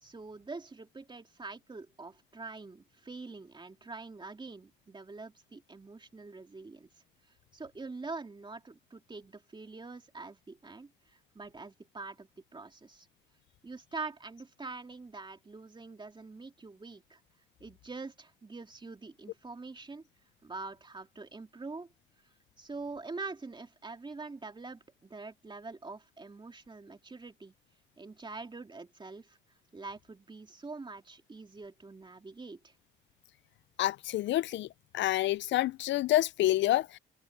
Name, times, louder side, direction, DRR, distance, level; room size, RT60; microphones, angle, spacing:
voice 1, 0.0-6.9 7.5-13.1 13.6-17.2 17.6-20.0 20.4-21.9 22.6-27.5 28.0-29.4 29.7-32.7, right 3 dB, 25° right, 2.8 m, -45 dB
voice 2, 33.8-34.7 34.9-37.0, left 15 dB, 70° left, 0.4 m, -28 dB
cardioid pair, 90°, 20 cm